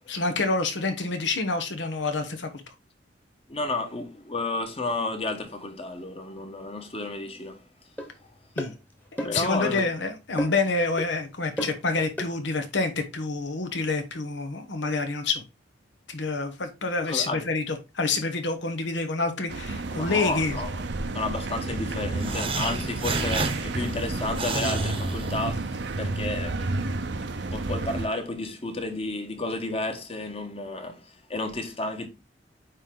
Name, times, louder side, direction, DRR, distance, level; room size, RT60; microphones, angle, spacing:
voice 1, 0.1-2.5 8.6-8.7 9.1-15.4 16.1-20.6, left 3 dB, 90° left, 1.1 m, -27 dB
voice 2, 3.5-7.6 9.2-9.9 17.1-17.4 19.9-20.8 21.1-32.1, left 2 dB, 35° left, 1.2 m, -32 dB
sound 1, 8.0-8.1 8.6-8.7 9.2-9.4 9.8-9.9 10.4-10.7 11.0-11.1 11.6-11.8 12.2-12.3, equal, 10° left, 1.2 m, -32 dB
sound 2, 19.5-28.1, right 2 dB, 70° right, 0.7 m, -31 dB
sound 3, 22.2-25.9, right 3 dB, 30° right, 0.9 m, -31 dB
9.0 x 3.3 x 3.8 m
head